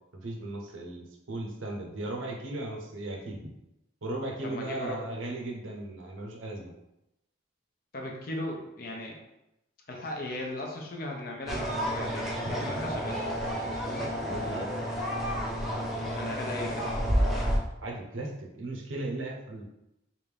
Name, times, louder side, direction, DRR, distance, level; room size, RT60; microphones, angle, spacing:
voice 1, 0.2-3.4 4.0-6.7 14.4-14.7 17.8-19.7, right 2 dB, 80° right, 1 dB, 0.7 m, -36 dB
voice 2, 4.4-5.1 7.9-9.2 9.9-13.2 13.4-13.7 16.0-16.9, left 1 dB, 45° left, 0 dB, 0.6 m, -37 dB
sound 1, 11.5-17.6, equal, ahead, 0.6 m, -30 dB
3.3 x 2.6 x 3.3 m, 0.88 s
head